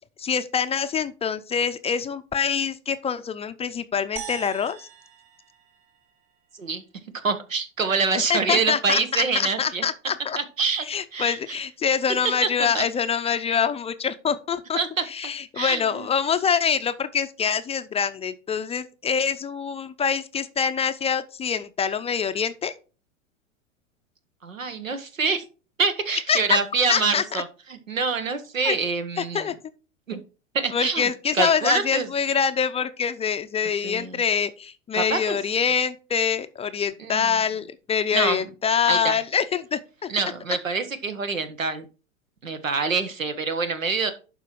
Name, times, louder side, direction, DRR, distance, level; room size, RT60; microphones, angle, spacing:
voice 1, 0.2-4.9 8.3-10.4 10.9-14.8 15.1-22.7 26.3-26.6 26.9-27.4 28.6-28.8 29.2-29.5 30.7-40.1, left 7 dB, 15° left, 0.5 m, -25 dB
sound 1, 4.2-6.6, right 10 dB, 55° right, 1.9 m, -41 dB
voice 2, 7.2-9.8 10.4-10.8 11.1-11.6 12.4-12.5 12.7-12.8 13.5-13.6 14.8-15.0 15.5-16.1 24.4-25.4 25.8-27.4 27.9-29.5 30.1-30.2 30.5-31.1 31.3-32.1 33.8-34.2 34.9-35.4 37.0-37.3 38.1-38.4 38.9-39.2 40.1-41.8 42.4-44.1, right 4 dB, 90° right, 1.4 m, -26 dB
11.5 x 4.4 x 4.5 m
hypercardioid pair, 95°, 38 cm